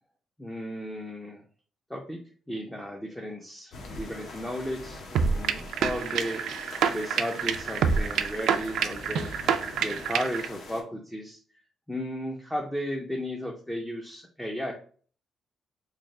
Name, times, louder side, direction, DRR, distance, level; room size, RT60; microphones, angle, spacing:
voice 1, 0.4-1.4 1.9-2.2 2.5-6.4 6.9-9.3 9.8-11.4 11.9-14.7, equal, 5° left, 1 dB, 0.4 m, -34 dB
sound 1, 3.7-10.8, left 2 dB, 55° left, 0.8 m, -43 dB
sound 2, 5.2-10.5, right 6 dB, 80° right, 0.3 m, -27 dB
3.2 x 2.6 x 3.6 m, 0.44 s
cardioid pair, 175°, 0 cm